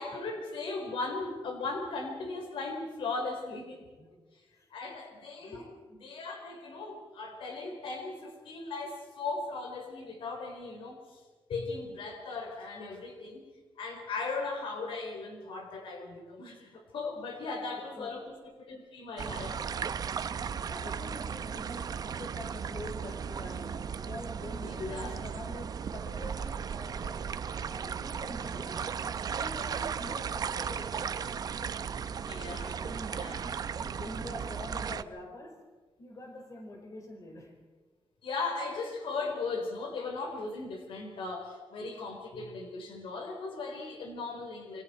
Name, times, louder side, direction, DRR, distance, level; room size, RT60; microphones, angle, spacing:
voice 1, 0.0-3.8 4.7-5.6 6.0-11.2 11.5-13.5 13.8-19.6 24.6-25.1 29.6-29.9 32.0-32.9 33.1-33.4 38.2-44.8, left 3 dB, 85° left, 3 dB, 4.1 m, -38 dB
voice 2, 5.4-5.8 17.4-17.6 18.0-18.1 20.6-27.4 27.6-31.4 32.8-35.7 36.0-37.6, left 1 dB, 40° left, 2 dB, 4.8 m, -46 dB
sound 1, 19.2-35.0, right 7 dB, 50° right, 0.7 m, -36 dB
27.5 x 25.5 x 4.4 m, 1.3 s
wide cardioid pair, 160°, 9 cm